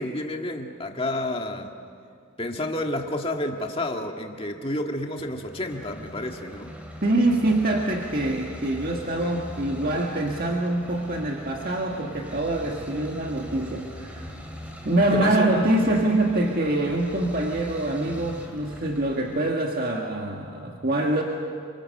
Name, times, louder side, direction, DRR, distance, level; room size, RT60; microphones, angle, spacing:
voice 1, 0.0-1.7 2.4-6.8 15.1-15.5, left 1 dB, 25° left, 3 dB, 1.9 m, -30 dB
sound 1, 5.2-19.5, equal, 5° right, 2.7 m, -42 dB
voice 2, 7.0-14.3 14.8-21.2, right 1 dB, 45° right, 0 dB, 1.8 m, -25 dB
29.5 x 25.5 x 6.7 m, 2.4 s
head